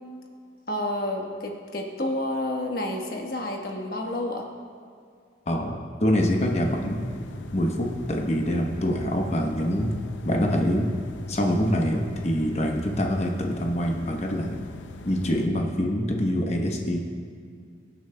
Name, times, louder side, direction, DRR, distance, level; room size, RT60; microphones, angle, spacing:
voice 1, 0.7-4.4, left 1 dB, 55° left, 1 dB, 1.3 m, -29 dB
voice 2, 5.5-7.1 7.5-9.9 10.2-10.9 11.3-14.6 15.0-17.0, equal, 35° left, 1 dB, 1.0 m, -25 dB
sound 1, 6.2-15.5, left 3 dB, 85° left, 0.6 m, -41 dB
22.0 x 8.9 x 2.3 m, 2.2 s
head